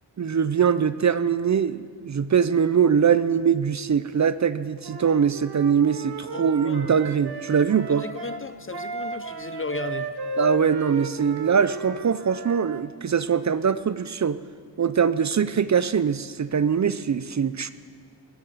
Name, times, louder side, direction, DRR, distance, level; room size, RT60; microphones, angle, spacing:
voice 1, 0.2-8.0 10.4-14.4 14.8-17.7, right 7 dB, 40° right, 14 dB, 0.4 m, -22 dB
Wind instrument woodwind instrument, 4.8-12.8, right 4 dB, 60° right, 1.0 m, -35 dB
voice 2, 6.3-6.9 7.9-10.1, left 4 dB, 30° left, 13 dB, 0.4 m, -35 dB
19.5 x 9.5 x 7.6 m, 2.1 s
wide cardioid pair, 135°, 45 cm